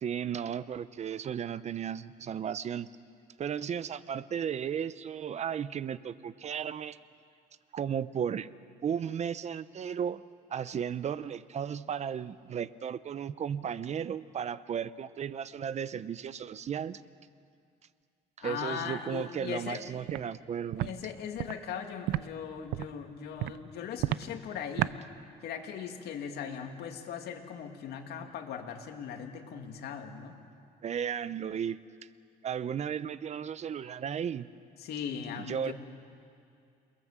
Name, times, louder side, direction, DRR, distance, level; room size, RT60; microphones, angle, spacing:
voice 1, 0.0-2.9 3.4-7.0 7.7-8.5 8.8-10.2 10.5-17.0 18.4-21.0 30.8-31.8 32.4-34.5 35.5-35.7, right 8 dB, 40° right, 16 dB, 0.8 m, -34 dB
voice 2, 18.4-19.8 20.8-25.0 25.4-30.4 34.8-35.7, left 7 dB, 75° left, 3 dB, 2.6 m, -39 dB
Walk footsteps, 20.1-20.2 20.7-20.9 21.4-21.5 22.1-22.2 22.7-22.9 23.4-23.6 24.0-24.2 24.8-24.9, right 16 dB, 85° right, 0.6 m, -30 dB
28.5 x 20.5 x 7.5 m, 2.4 s
cardioid pair, 110°, 17 cm